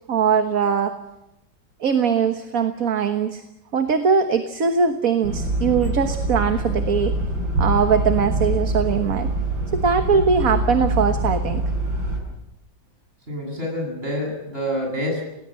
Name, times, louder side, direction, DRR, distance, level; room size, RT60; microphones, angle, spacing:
voice 1, 0.1-1.0 1.8-3.4 3.7-7.2 7.6-9.3 9.7-11.6, right 6 dB, 50° right, 7 dB, 1.7 m, -21 dB
sound 1, 5.2-12.2, right 1 dB, 90° right, 7.1 m, -24 dB
voice 2, 13.3-15.2, equal, 30° right, 1 dB, 8.3 m, -27 dB
29.0 x 19.0 x 7.7 m, 0.93 s
omnidirectional pair, 2.0 m